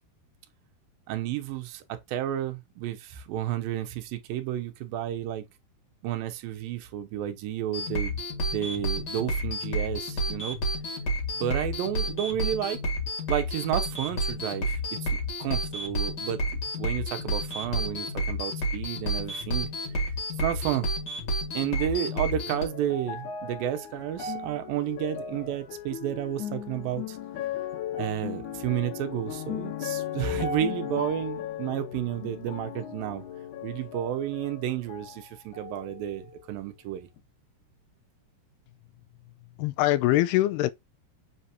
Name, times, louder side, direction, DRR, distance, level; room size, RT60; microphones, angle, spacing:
voice 1, 1.1-5.4 6.0-10.6 11.3-12.8 13.3-16.4 16.8-19.7 20.3-20.9 21.5-27.2 28.0-33.2 33.6-37.1, right 11 dB, 75° right, 2.5 m, -31 dB
sound 1, 7.7-22.6, equal, 35° left, 2.1 m, -30 dB
sound 2, 21.7-35.2 35.5-36.5 37.2-37.3, left 7 dB, 65° left, 2.2 m, -37 dB
voice 2, 39.6-40.7, left 16 dB, 90° left, 2.6 m, -23 dB
7.6 x 4.5 x 2.9 m
omnidirectional pair, 4.5 m